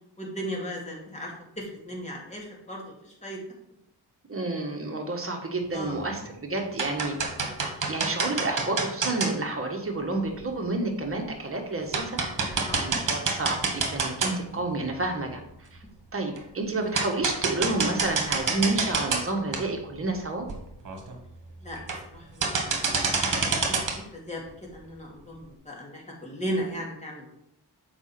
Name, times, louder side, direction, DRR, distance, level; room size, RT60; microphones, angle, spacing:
voice 1, 0.2-3.4 5.7-6.1 12.6-12.8 21.6-21.8 22.1-22.9 23.2-24.5 24.7-27.3, equal, 15° left, -2 dB, 2.5 m, -36 dB
voice 2, 4.3-7.2 7.9-15.8 16.1-20.4, right 2 dB, 35° right, 2 dB, 1.5 m, -30 dB
sound 1, 5.8-6.2 6.6-9.3 10.4-10.5 11.0-11.1 11.5-11.6 11.9-14.6 15.0-15.1 16.4-16.5 16.9-19.2 19.5-19.6 20.2-20.3 20.5-20.6 20.8-21.1 21.7-22.1 22.4-24.0, right 4 dB, 50° right, 1.6 m, -27 dB
7.0 x 5.2 x 4.4 m, 0.77 s
cardioid pair, 90°, 40 cm